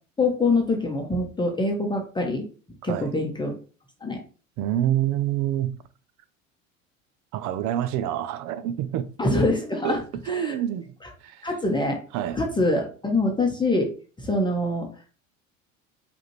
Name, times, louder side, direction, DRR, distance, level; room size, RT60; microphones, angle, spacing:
voice 1, 0.2-2.4 2.8-3.5 4.0-4.2 9.2-10.5 11.4-12.0 12.3-13.9 14.2-14.9, left 2 dB, 10° left, 0.9 m, -24 dB
voice 2, 4.6-5.8 7.3-9.1 9.8-10.0 10.3-10.9 11.2-11.5 12.1-12.4, right 11 dB, 50° right, 0.5 m, -27 dB
4.9 x 2.6 x 3.0 m
hypercardioid pair, 75°, 40 cm